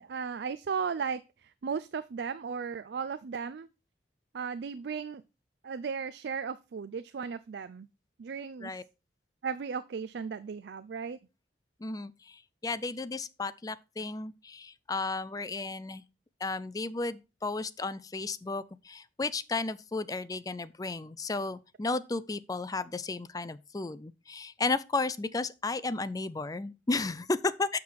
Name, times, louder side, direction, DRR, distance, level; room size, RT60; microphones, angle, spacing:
voice 1, 0.0-3.7 4.3-5.2 5.6-7.9 8.2-8.7 9.4-11.2, right 6 dB, 65° right, 0.4 m, -36 dB
voice 2, 11.8-16.0 16.4-27.8, left 3 dB, 20° left, 0.4 m, -33 dB
7.2 x 5.9 x 4.7 m
head